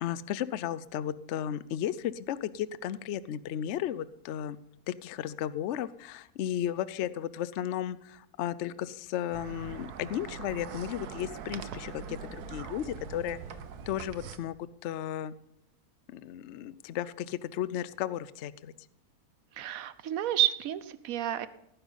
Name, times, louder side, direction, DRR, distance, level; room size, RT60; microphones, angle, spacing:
voice 1, 0.0-4.6 4.9-13.4 13.9-15.3 16.1-18.7, left 11 dB, 65° left, 17 dB, 0.7 m, -34 dB
sound 1, 9.3-14.4, right 6 dB, 85° right, 1.4 m, -42 dB
voice 2, 19.5-21.5, right 11 dB, 65° right, 14 dB, 1.1 m, -30 dB
17.0 x 10.0 x 4.0 m, 0.82 s
omnidirectional pair, 1.6 m